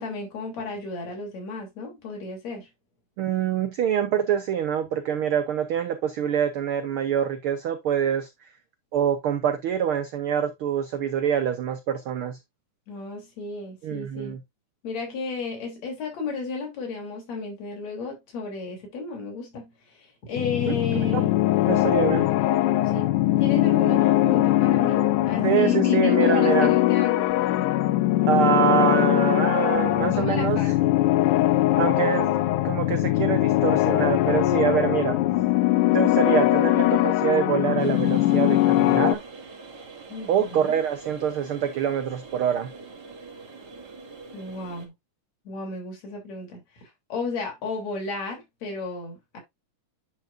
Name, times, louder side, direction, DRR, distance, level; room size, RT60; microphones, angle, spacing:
voice 1, 0.0-2.7 12.9-14.4 14.8-21.4 22.9-23.1 23.4-27.3 30.1-30.9 40.1-40.8 44.3-44.9 45.5-49.4, left 4 dB, 60° left, 4.5 m, -33 dB
voice 2, 3.2-8.3 8.9-12.4 13.8-14.4 20.7-20.8 21.1-21.2 21.7-22.3 25.4-26.8 28.3-30.7 31.8-32.3 32.6-35.2 35.9-39.2 40.3-42.7, right 8 dB, 85° right, 1.2 m, -25 dB
sound 1, 20.4-39.1, left 16 dB, 90° left, 2.2 m, -21 dB
sound 2, 37.8-44.9, right 4 dB, 35° right, 2.6 m, -44 dB
10.0 x 5.9 x 2.5 m
omnidirectional pair, 3.5 m